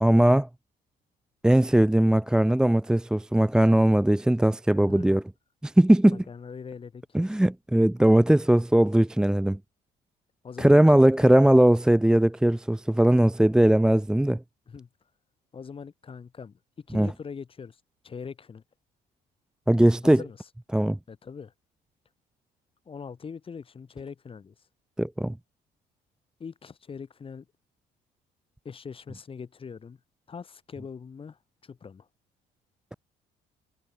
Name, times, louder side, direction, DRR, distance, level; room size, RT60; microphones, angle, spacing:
voice 1, 0.0-0.5 1.4-5.2 5.6-6.2 7.1-9.6 10.6-14.4 16.9-17.1 19.7-20.2 20.7-21.0 25.0-25.3, right 1 dB, 5° right, 0.5 m, -20 dB
voice 2, 4.9-5.2 6.1-7.3 10.4-11.3 14.7-14.9 15.5-17.8 18.0-18.6 20.0-20.4 21.1-21.5 22.8-24.5 26.4-27.5 28.6-30.0 30.3-32.1, left 6 dB, 35° left, 3.3 m, -42 dB
cardioid pair, 110°, 17 cm